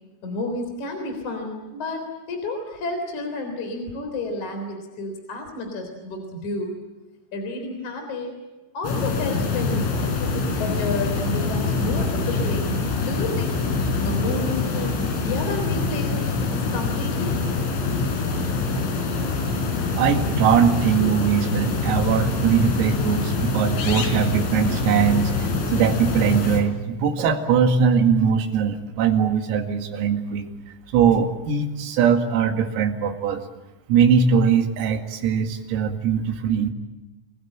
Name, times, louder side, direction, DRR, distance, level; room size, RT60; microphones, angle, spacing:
voice 1, 0.2-6.8 7.3-8.3 8.7-13.6 14.0-17.4 21.0-21.1, left 2 dB, 40° left, 4 dB, 4.6 m, -31 dB
sound 1, 8.8-26.6, left 4 dB, 75° left, 6.6 m, -25 dB
voice 2, 20.0-30.5 30.9-33.4 33.9-36.7, right 7 dB, 85° right, 4 dB, 4.8 m, -21 dB
28.0 x 20.5 x 8.9 m, 1.1 s
omnidirectional pair, 6.0 m